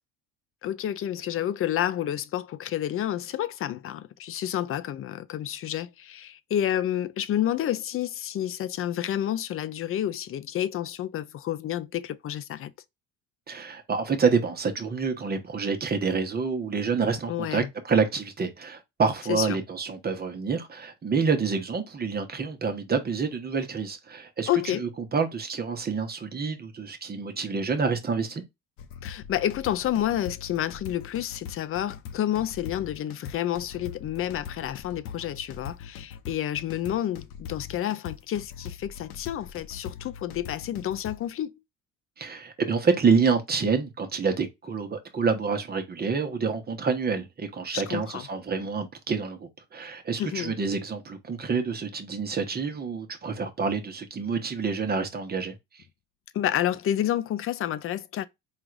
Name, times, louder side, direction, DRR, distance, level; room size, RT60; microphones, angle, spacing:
voice 1, 0.6-12.7 17.3-17.7 19.3-19.6 24.5-24.8 29.0-41.5 47.7-48.3 50.2-50.6 56.3-58.3, left 11 dB, 40° left, 0.5 m, -29 dB
voice 2, 13.5-28.4 42.2-55.5, right 5 dB, 25° right, 1.0 m, -27 dB
sound 1, 28.8-41.3, left 7 dB, 75° left, 0.8 m, -41 dB
3.8 x 2.5 x 4.6 m
supercardioid pair, 95°, 35 cm